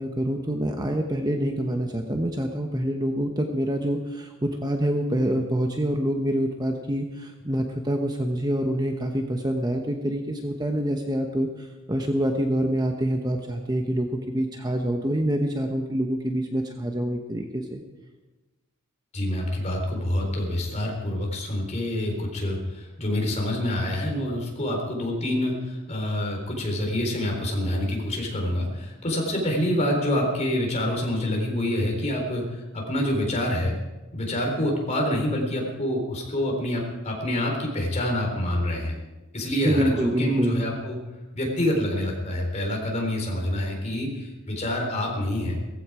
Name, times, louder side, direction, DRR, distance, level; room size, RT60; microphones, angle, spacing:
voice 1, 0.0-17.8 39.6-40.6, right 1 dB, 20° right, 4 dB, 1.0 m, -26 dB
voice 2, 19.1-33.7 34.1-39.0 39.3-41.0 41.3-45.6, left 1 dB, 30° left, 0 dB, 3.9 m, -27 dB
17.5 x 15.0 x 4.9 m, 1.1 s
head